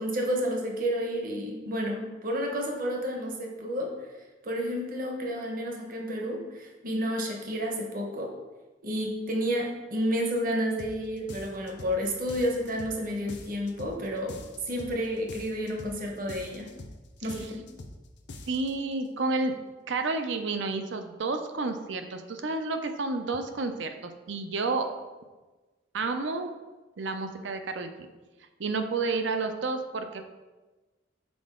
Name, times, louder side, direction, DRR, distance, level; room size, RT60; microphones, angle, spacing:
voice 1, 0.0-3.9 4.4-8.3 8.8-14.4 14.6-16.7 17.2-17.6, equal, 45° right, 1 dB, 1.0 m, -30 dB
sound 1, 10.8-11.0 11.3-12.0 12.3-13.0 13.3-14.0 14.3-15.0 15.3-16.0 16.3-17.0 17.3-18.0 18.3-18.7, left 2 dB, 60° left, 0.6 m, -43 dB
voice 2, 18.5-19.5 19.9-24.9 25.9-26.5 27.0-28.1 28.6-30.2, right 3 dB, 70° right, 7 dB, 0.6 m, -30 dB
6.1 x 4.7 x 3.7 m, 1.2 s
head